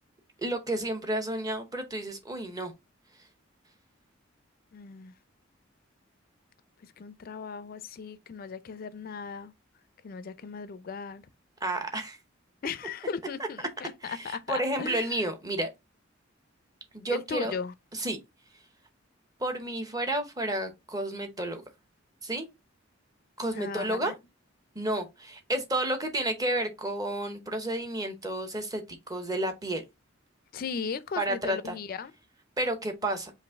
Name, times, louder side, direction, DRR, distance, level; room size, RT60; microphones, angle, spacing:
voice 1, 0.4-2.7 11.6-12.2 14.0-15.7 16.9-17.5 17.9-18.2 19.4-21.6 22.2-22.5 23.4-24.1 24.7-28.8 29.1-29.8 31.2-31.8 32.6-33.3, right 1 dB, 20° right, 0.8 m, -31 dB
voice 2, 4.7-5.1 6.8-9.5 10.0-11.3 12.6-15.2 17.1-17.7 23.5-24.1 30.5-32.1, left 5 dB, 45° left, 0.4 m, -37 dB
5.2 x 2.5 x 3.4 m
head